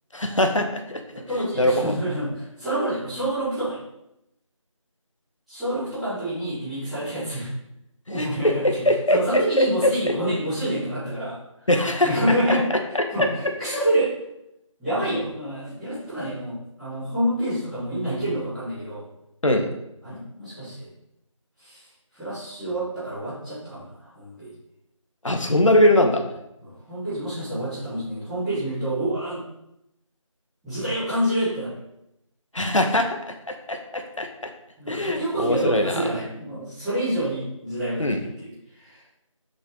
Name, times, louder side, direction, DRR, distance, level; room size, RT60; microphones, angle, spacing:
voice 1, 0.1-1.0 1.6-2.0 8.1-9.9 11.7-12.1 12.5-12.6 19.4-19.6 25.2-26.2 32.5-33.2 33.5-34.3 34.9-36.0 38.0-38.2, left 1 dB, 65° left, 4 dB, 1.6 m, -21 dB
voice 2, 1.1-3.8 5.5-7.6 8.1-8.8 9.1-11.7 12.0-12.7 13.1-14.1 14.8-19.0 20.0-20.9 21.6-21.8 22.1-24.5 26.6-29.4 30.6-31.7 34.8-39.0, right 1 dB, ahead, -22 dB, 1.8 m, -28 dB
8.4 x 6.6 x 3.9 m, 0.85 s
figure-of-eight pair, 175°, 17 cm